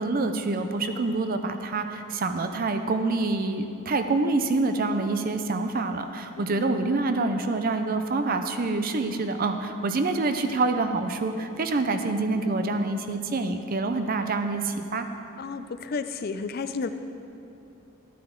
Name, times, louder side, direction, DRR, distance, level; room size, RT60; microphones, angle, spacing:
voice 1, 0.0-15.1, right 3 dB, 40° right, 7 dB, 0.5 m, -26 dB
voice 2, 15.4-16.9, left 4 dB, 45° left, 10 dB, 0.4 m, -32 dB
12.0 x 9.3 x 3.7 m, 2.9 s
head